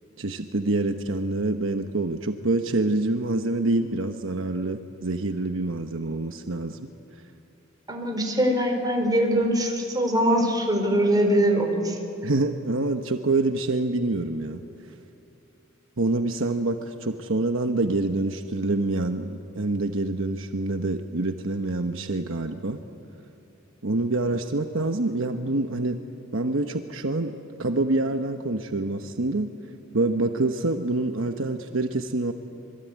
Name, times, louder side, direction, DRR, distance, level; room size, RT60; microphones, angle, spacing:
voice 1, 0.2-6.9 12.2-14.6 16.0-22.8 23.8-26.0 26.3-29.5 29.9-32.3, right 2 dB, 70° right, 6 dB, 1.1 m, -26 dB
voice 2, 7.9-12.0, equal, 20° right, 2 dB, 4.4 m, -22 dB
26.5 x 22.0 x 9.5 m, 2.8 s
head